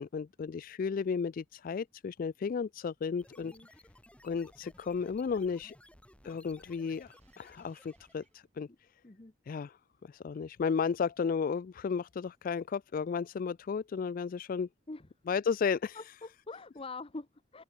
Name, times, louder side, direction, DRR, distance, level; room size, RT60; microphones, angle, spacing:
voice 1, 0.0-3.5 4.2-5.7 6.2-8.7 9.5-9.8 10.0-14.7 15.3-16.0, left 6 dB, 45° left, 0.3 m, -33 dB
sound 1, 3.2-8.4, left 1 dB, 5° left, 4.3 m, -59 dB
voice 2, 3.4-3.7 8.7-8.8 9.0-9.3 14.9-15.1 15.9-17.6, left 3 dB, 30° left, 0.8 m, -45 dB
sound 2, 3.8-9.1, right 1 dB, 35° right, 7.1 m, -72 dB
open air
head